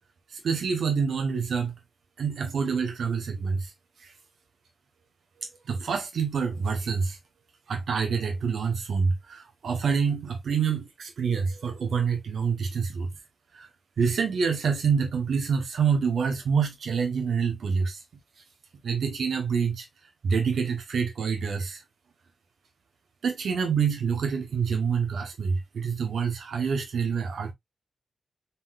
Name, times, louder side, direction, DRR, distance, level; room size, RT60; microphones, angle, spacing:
voice 1, 0.3-1.7 2.2-3.7 4.0-4.1 5.4-7.2 7.7-13.1 13.5-13.7 14.0-18.0 18.8-19.9 20.2-21.8 23.2-27.5, right 6 dB, 85° right, 1.2 m, -27 dB
4.2 x 3.9 x 2.5 m
wide cardioid pair, 100°, 0 cm